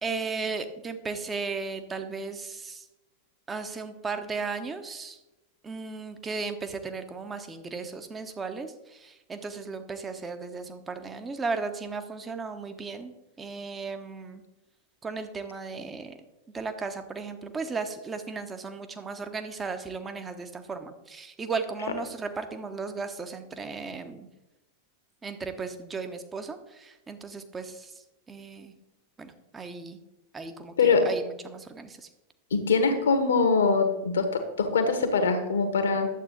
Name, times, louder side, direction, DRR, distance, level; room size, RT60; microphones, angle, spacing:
voice 1, 0.0-2.8 3.5-5.2 5.6-14.4 15.0-16.2 16.5-24.3 25.2-27.9 28.3-28.7 29.2-30.0 30.3-32.1, right 4 dB, 15° right, 8 dB, 1.0 m, -35 dB
voice 2, 32.5-36.1, left 4 dB, 65° left, 7 dB, 1.5 m, -23 dB
11.0 x 7.9 x 4.0 m, 0.98 s
figure-of-eight pair, 90°, 0 cm